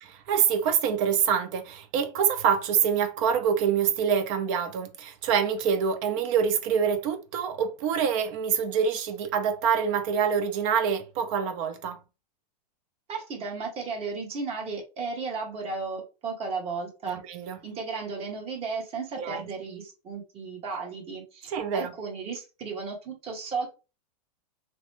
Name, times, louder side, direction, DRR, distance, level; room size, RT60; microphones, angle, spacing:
voice 1, 0.3-12.0 17.1-17.6 19.2-19.4 21.5-21.9, right 7 dB, 55° right, 0.7 m, -26 dB
voice 2, 13.1-17.2 17.6-23.7, right 4 dB, 30° right, 1.1 m, -34 dB
2.9 x 2.1 x 3.2 m
hypercardioid pair, 125°, 20 cm